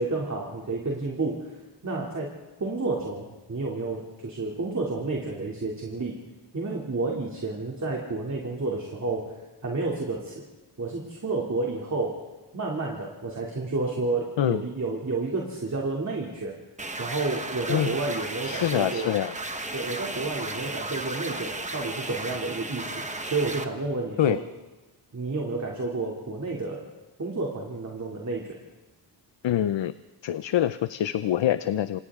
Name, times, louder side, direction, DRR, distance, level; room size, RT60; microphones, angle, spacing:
voice 1, 0.0-1.5 1.8-2.3 2.6-6.1 6.5-9.3 9.6-10.4 10.8-12.2 12.5-16.5 17.0-19.1 19.7-24.4 25.1-26.9 27.2-28.6, right 3 dB, 40° right, -2 dB, 2.8 m, -30 dB
sound 1, 16.8-23.6, right 2 dB, 15° right, 1.2 m, -34 dB
voice 2, 18.4-19.3 24.2-24.4 29.4-29.9 30.2-32.0, left 11 dB, 85° left, 13 dB, 0.6 m, -25 dB
28.0 x 27.0 x 3.7 m, 1.2 s
wide cardioid pair, 170°, 43 cm